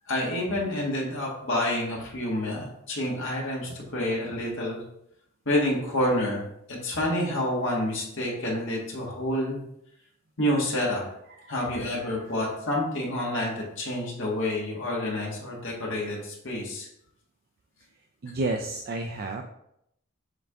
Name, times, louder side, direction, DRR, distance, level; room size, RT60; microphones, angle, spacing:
voice 1, 0.1-4.8 5.5-9.6 10.4-11.0 11.5-16.9, left 1 dB, 70° left, -3 dB, 1.8 m, -28 dB
voice 2, 11.3-12.5 18.2-19.4, right 2 dB, 50° right, 4 dB, 0.4 m, -33 dB
7.4 x 3.5 x 3.6 m, 0.77 s
head